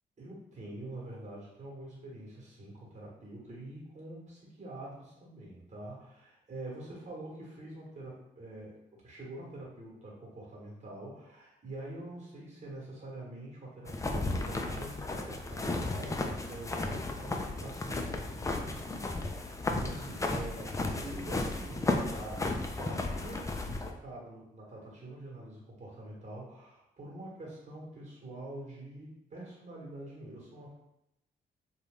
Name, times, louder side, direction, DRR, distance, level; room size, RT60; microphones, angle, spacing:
voice 1, 0.2-22.5 22.8-30.7, right 2 dB, 35° right, -4 dB, 1.2 m, -46 dB
sound 1, 13.9-23.9, left 2 dB, 15° left, 0.4 m, -34 dB
2.4 x 2.3 x 3.5 m, 0.85 s
supercardioid pair, 55°, 20 cm